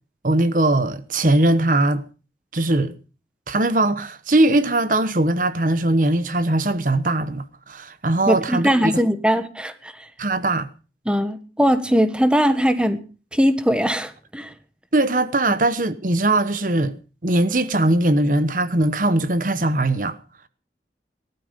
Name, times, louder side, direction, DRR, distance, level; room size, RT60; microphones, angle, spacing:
voice 1, 0.2-2.0 2.5-2.9 3.5-8.9 10.2-10.7 14.9-16.9 17.2-20.2, right 2 dB, 45° right, 1.1 m, -20 dB
voice 2, 8.3-10.1 11.1-13.0 13.3-14.5, equal, 5° right, 1.3 m, -20 dB
19.0 x 12.5 x 5.2 m
head